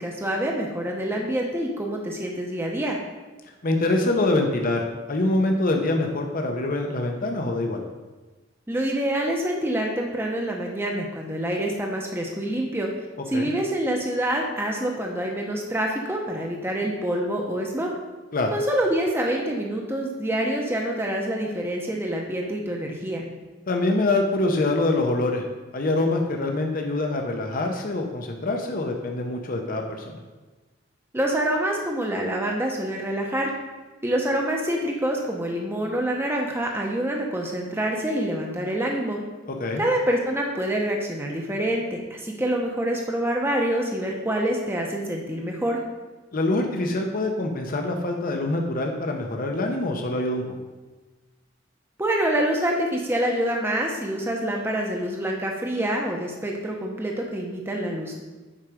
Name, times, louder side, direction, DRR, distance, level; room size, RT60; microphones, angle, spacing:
voice 1, 0.0-3.0 8.7-12.9 13.3-17.9 18.5-23.2 31.1-33.5 34.0-39.2 39.8-45.8 52.0-58.2, right 1 dB, 10° right, 0 dB, 0.8 m, -26 dB
voice 2, 3.6-7.8 13.3-13.5 18.3-18.5 23.7-25.4 25.7-30.2 39.5-39.8 46.3-50.4, left 2 dB, 45° left, 2 dB, 0.8 m, -25 dB
7.5 x 4.9 x 4.9 m, 1.2 s
head